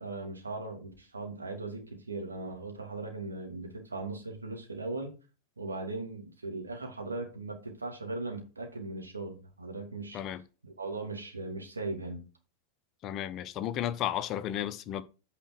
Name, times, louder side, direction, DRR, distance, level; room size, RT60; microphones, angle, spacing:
voice 1, 0.0-5.1 5.6-10.2 10.6-12.2, right 2 dB, 75° right, 2.6 m, -38 dB
voice 2, 10.1-10.4 13.0-15.0, left 11 dB, 35° left, 0.7 m, -33 dB
9.0 x 5.0 x 4.6 m
figure-of-eight pair, 90°, 0 cm